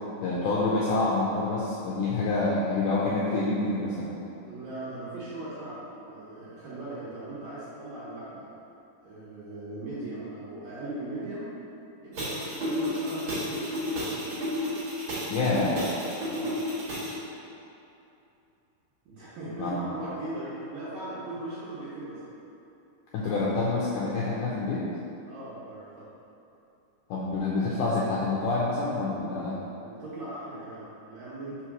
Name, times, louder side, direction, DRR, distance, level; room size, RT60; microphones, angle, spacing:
voice 1, 0.2-4.1 15.3-15.8 19.6-19.8 23.1-24.9 27.1-29.6, left 3 dB, 85° left, -6 dB, 1.9 m, -27 dB
voice 2, 4.4-8.5 9.0-11.4 12.0-14.5 16.3-16.6 19.1-22.2 25.3-26.1 29.8-31.6, right 2 dB, 65° right, -10 dB, 1.8 m, -38 dB
sound 1, 12.1-17.2, left 1 dB, 50° right, 1.5 m, -32 dB
5.1 x 4.4 x 6.0 m, 2.8 s
omnidirectional pair, 4.5 m